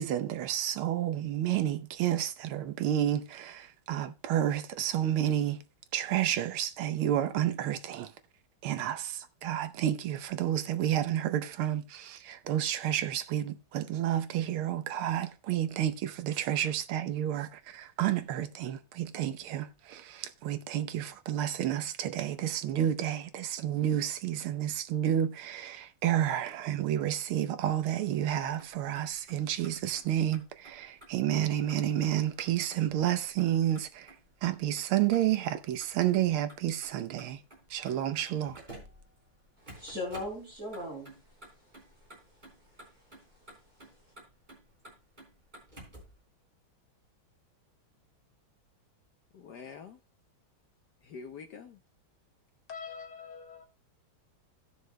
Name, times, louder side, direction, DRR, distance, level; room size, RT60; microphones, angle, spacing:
voice 1, 0.0-5.6 5.9-8.1 8.6-34.1 34.4-37.4 37.7-38.6, right 11 dB, 85° right, 1.6 m, -30 dB
Motor vehicle (road), 28.6-46.2, right 1 dB, 20° right, 4.1 m, -54 dB
voice 2, 39.6-43.9, left 1 dB, 35° right, 4.6 m, -42 dB
voice 3, 49.3-50.0 51.0-51.8 52.7-53.7, left 6 dB, 60° left, 1.2 m, -45 dB
18.0 x 6.4 x 2.2 m
omnidirectional pair, 2.3 m